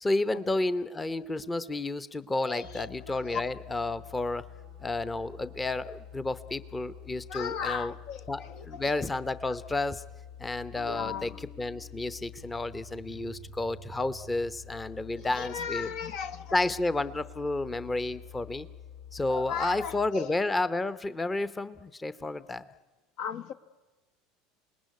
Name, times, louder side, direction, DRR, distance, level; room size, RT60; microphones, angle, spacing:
voice 1, 0.0-4.5 4.8-7.9 8.3-10.0 10.4-15.9 16.5-18.7 19.1-22.7, left 2 dB, 15° left, 0.8 m, -31 dB
voice 2, 2.4-3.4 7.3-8.9 9.5-9.6 10.9-11.4 13.2-13.3 15.2-16.6 19.3-20.3 23.2-23.5, left 7 dB, 60° left, 0.9 m, -37 dB
sound 1, 2.6-20.1, left 7 dB, 90° left, 5.5 m, -48 dB
Marimba xylophone, 10.7-12.8, left 8 dB, 40° left, 2.0 m, -52 dB
26.5 x 19.5 x 9.5 m
hypercardioid pair, 75°, 0 cm